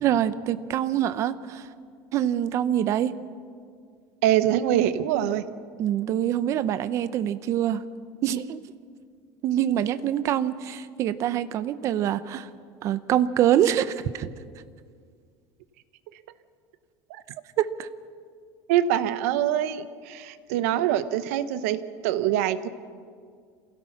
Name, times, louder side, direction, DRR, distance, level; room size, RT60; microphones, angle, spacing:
voice 1, 0.0-1.7 2.1-3.1 5.8-7.8 8.2-8.6 9.4-12.5 12.8-14.3 17.6-17.9, right 11 dB, 40° right, 14 dB, 0.8 m, -25 dB
voice 2, 4.2-5.4 17.1-17.2 18.7-22.7, right 11 dB, 90° right, 12 dB, 1.0 m, -24 dB
27.0 x 16.5 x 6.0 m, 2.1 s
cardioid pair, 155°, 8 cm